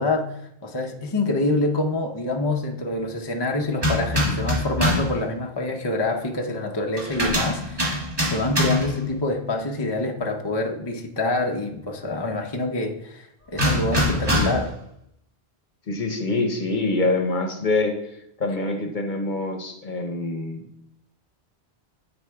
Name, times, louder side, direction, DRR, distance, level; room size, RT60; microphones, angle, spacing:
voice 1, 0.0-14.7, left 2 dB, 30° left, 2 dB, 0.6 m, -26 dB
sound 1, 3.8-5.2 7.0-9.0 13.6-14.7, left 1 dB, 25° right, 1.3 m, -24 dB
voice 2, 15.9-20.6, left 2 dB, 50° left, 5 dB, 1.0 m, -25 dB
9.8 x 4.3 x 3.5 m, 0.75 s
omnidirectional pair, 1.1 m